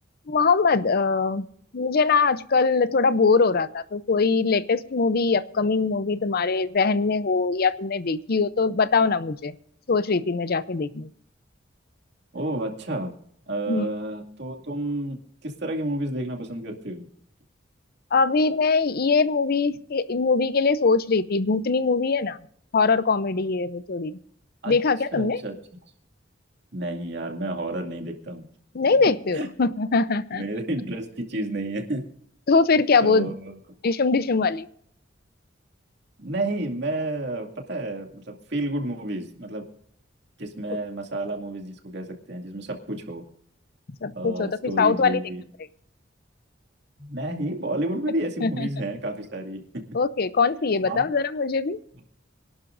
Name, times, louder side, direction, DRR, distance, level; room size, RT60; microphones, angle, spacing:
voice 1, 0.3-1.5 1.7-9.6 9.9-11.1 13.7-13.9 18.1-22.4 22.7-24.2 24.7-25.4 28.7-30.4 32.5-33.3 33.8-34.7 44.0-45.2 48.4-48.7 49.9-51.8, left 4 dB, 55° left, 15 dB, 0.6 m, -22 dB
voice 2, 12.3-13.1 13.5-17.1 24.6-24.7 25.1-25.6 26.7-28.4 29.3-29.5 30.3-32.1 33.0-33.6 36.2-39.7 40.4-43.2 44.1-45.4 47.0-49.8 50.8-51.1, right 1 dB, 65° right, 2 dB, 2.4 m, -30 dB
25.0 x 12.0 x 2.6 m, 0.66 s
head